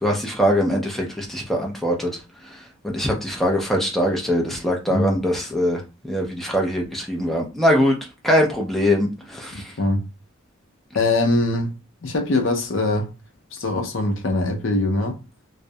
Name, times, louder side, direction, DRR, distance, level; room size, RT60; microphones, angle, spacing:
voice 1, 0.0-9.8, equal, ahead, 0.4 m, -22 dB
voice 2, 9.5-10.0 10.9-11.8 12.0-13.1 13.5-15.2, left 2 dB, 65° left, 0.5 m, -22 dB
2.3 x 2.0 x 2.6 m
head